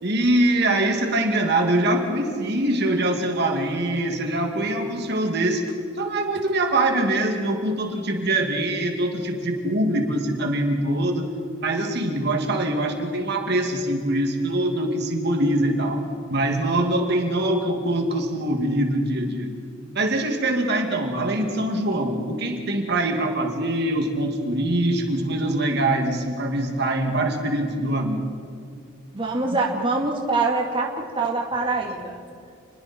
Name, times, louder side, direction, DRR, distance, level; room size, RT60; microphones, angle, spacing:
voice 1, 0.0-5.7 6.0-11.3 11.6-16.0 16.3-19.5 19.9-28.2, right 1 dB, 55° right, 3 dB, 2.5 m, -23 dB
voice 2, 29.1-32.1, right 3 dB, 25° right, -1 dB, 2.3 m, -24 dB
29.0 x 21.5 x 4.6 m, 2.3 s
head